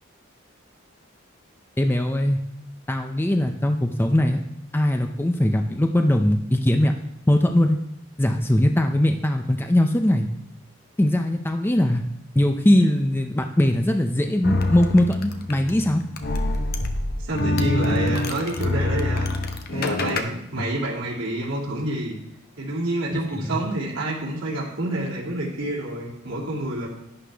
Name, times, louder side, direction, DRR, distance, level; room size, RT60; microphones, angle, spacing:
voice 1, 1.8-2.4 2.9-4.4 4.7-7.0 7.3-7.8 8.2-10.3 11.0-12.0 12.4-16.0 23.4-23.6, left 1 dB, 10° left, 5 dB, 0.5 m, -20 dB
sound 1, 14.4-20.2, left 2 dB, 50° left, 0.9 m, -25 dB
voice 2, 17.2-19.3 19.7-22.1 22.6-26.9, right 1 dB, 85° right, -7 dB, 2.6 m, -28 dB
11.0 x 9.8 x 3.4 m, 0.81 s
head